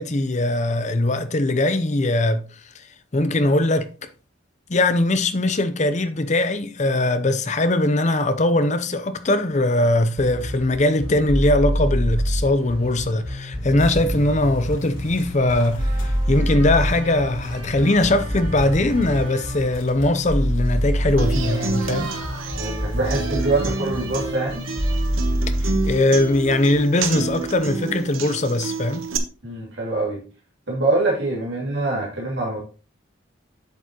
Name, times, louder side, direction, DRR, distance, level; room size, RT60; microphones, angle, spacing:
voice 1, 0.0-2.4 3.1-3.9 4.7-22.1 25.6-29.1, left 1 dB, 35° left, 0.7 m, -21 dB
sound 1, 10.2-27.5, equal, 25° right, 2.3 m, -26 dB
sound 2, 13.8-24.4, left 1 dB, 80° left, 3.1 m, -42 dB
Human voice / Acoustic guitar, 21.2-29.2, right 4 dB, 80° right, 1.1 m, -29 dB
voice 2, 22.6-24.6 29.4-30.2 30.7-32.6, right 2 dB, 55° right, 2.5 m, -24 dB
8.2 x 7.1 x 3.0 m
head